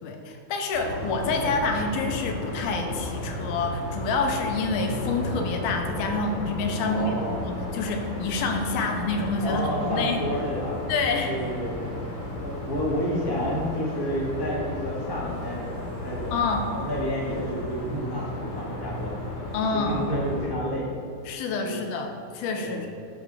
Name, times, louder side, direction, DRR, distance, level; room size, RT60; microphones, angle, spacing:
voice 1, 0.0-10.2 10.9-11.3 16.3-16.6 19.5-20.1 21.3-22.1 22.3-22.9, left 3 dB, 85° left, 3 dB, 2.8 m, -27 dB
sound 1, 0.7-20.5, left 1 dB, 65° left, 4.1 m, -34 dB
voice 2, 6.8-7.4 9.4-10.8 11.3-19.1 19.5-20.9 21.6-21.8 22.6-22.9, equal, 30° left, -4 dB, 0.4 m, -30 dB
13.0 x 5.1 x 4.9 m, 2.6 s
omnidirectional pair, 4.3 m